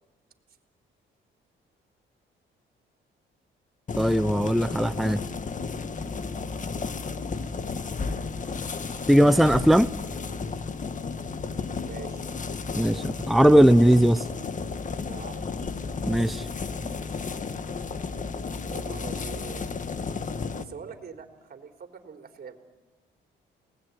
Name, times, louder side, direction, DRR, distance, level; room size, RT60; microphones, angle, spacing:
sound 1, 3.9-20.6, left 4 dB, 40° left, 1.7 m, -33 dB
voice 1, 3.9-5.2 9.1-9.9 12.8-14.3 16.1-16.5, equal, ahead, 11 dB, 0.8 m, -19 dB
voice 2, 11.8-12.2 12.9-13.1 15.0-15.5 18.1-19.6 20.6-22.6, right 6 dB, 50° right, 5 dB, 3.9 m, -44 dB
29.0 x 19.5 x 9.7 m, 1.3 s
cardioid pair, 90°, 20 cm